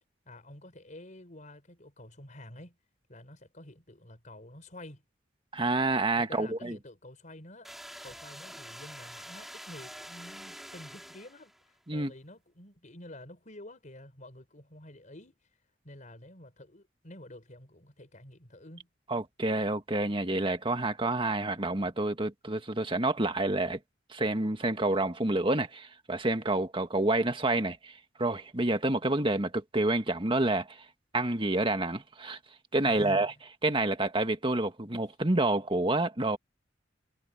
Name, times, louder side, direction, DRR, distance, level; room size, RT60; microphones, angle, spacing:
voice 1, 0.2-2.8 3.1-5.0 6.2-7.7 8.0-15.4 15.8-18.9 32.8-33.3, left 1 dB, 40° left, 5.0 m, -49 dB
voice 2, 5.5-6.8 11.9-12.1 19.1-23.8 24.1-30.8 31.1-32.4 32.7-33.3 33.6-36.4, right 2 dB, 30° right, 1.7 m, -28 dB
sound 1, 7.6-11.7, equal, ahead, 3.3 m, -46 dB
head